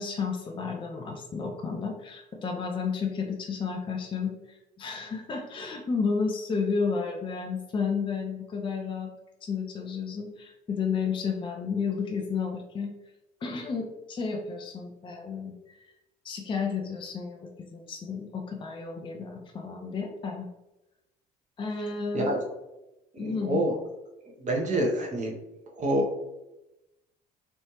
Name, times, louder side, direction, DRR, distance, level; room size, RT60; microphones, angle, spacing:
voice 1, 0.0-9.1 9.4-12.9 13.4-15.6 16.2-20.5 21.6-22.3 23.2-23.7, left 5 dB, 25° left, 2 dB, 0.5 m, -32 dB
voice 2, 23.1-23.7 24.4-25.3 25.7-26.2, right 1 dB, 35° right, 0 dB, 1.0 m, -27 dB
3.2 x 2.6 x 2.9 m, 0.95 s
figure-of-eight pair, 60°, 21 cm